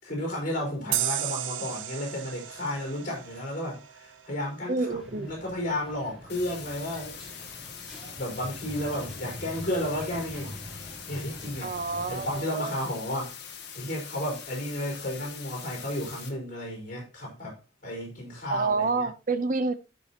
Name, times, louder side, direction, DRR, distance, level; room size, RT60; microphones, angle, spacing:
voice 1, 0.0-4.9 5.2-7.2 8.2-10.6 11.1-11.7 12.1-13.4 13.7-17.6 17.8-19.1, left 1 dB, 45° left, 4.5 m, -33 dB
sound 1, 0.9-4.3, right 12 dB, 85° right, 0.7 m, -33 dB
voice 2, 4.7-5.3 11.6-12.8 18.5-19.7, right 3 dB, 45° right, 0.6 m, -28 dB
sound 2, 4.9-12.4, left 1 dB, ahead, 3.2 m, -44 dB
sound 3, 6.3-16.3, left 7 dB, 60° left, 1.7 m, -43 dB
15.0 x 5.5 x 2.8 m
head